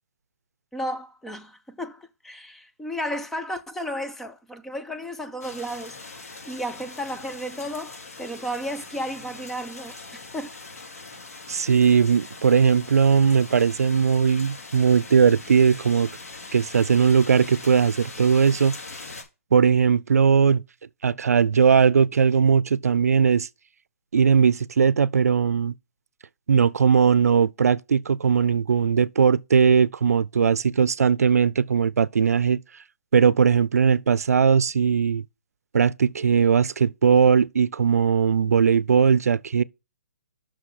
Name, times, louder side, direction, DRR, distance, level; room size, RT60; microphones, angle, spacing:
voice 1, 0.7-10.6, equal, 5° left, 0.4 m, -33 dB
sound 1, 5.4-19.2, left 3 dB, 80° left, 3.2 m, -41 dB
voice 2, 11.5-16.1 16.5-18.8 19.5-20.6 21.0-23.5 24.1-25.7 26.5-32.6 33.1-35.2 35.7-39.6, right 6 dB, 85° right, 0.4 m, -19 dB
6.2 x 6.0 x 4.7 m
hypercardioid pair, 155°, 8 cm